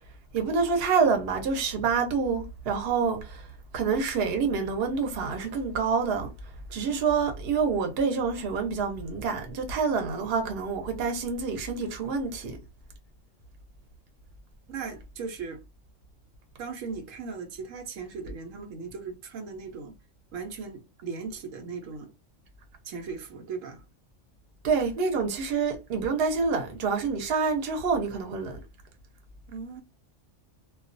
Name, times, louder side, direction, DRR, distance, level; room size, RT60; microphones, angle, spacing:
voice 1, 0.3-3.5 3.7-6.3 6.7-12.6 24.6-28.6, right 5 dB, 55° right, 0.9 m, -27 dB
voice 2, 14.7-15.6 16.6-19.9 20.3-22.1 22.8-23.8 29.5-29.8, right 5 dB, 90° right, 1.0 m, -38 dB
2.3 x 2.3 x 2.5 m
omnidirectional pair, 1.3 m